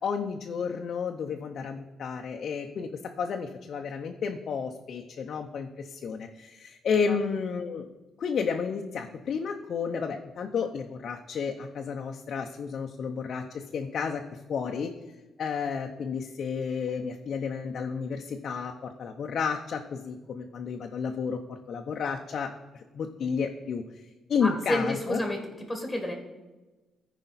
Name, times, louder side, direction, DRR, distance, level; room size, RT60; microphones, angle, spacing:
voice 1, 0.0-2.9 3.2-7.9 8.2-14.9 15.4-18.7 19.0-23.8 24.3-25.2, left 6 dB, 60° left, 3 dB, 0.6 m, -31 dB
voice 2, 24.4-25.4 25.7-26.1, left 1 dB, 5° left, 2 dB, 1.8 m, -30 dB
14.5 x 4.9 x 4.1 m, 1.1 s
cardioid pair, 90°, 0 cm